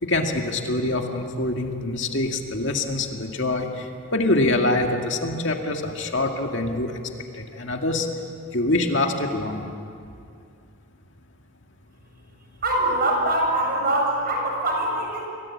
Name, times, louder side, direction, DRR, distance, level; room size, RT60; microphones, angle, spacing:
voice 1, 0.0-7.0 7.3-8.1 8.5-9.7, left 2 dB, 60° left, 3 dB, 2.3 m, -25 dB
voice 2, 12.6-15.2, right 1 dB, 45° right, 0 dB, 7.4 m, -23 dB
29.5 x 23.0 x 8.7 m, 2.4 s
head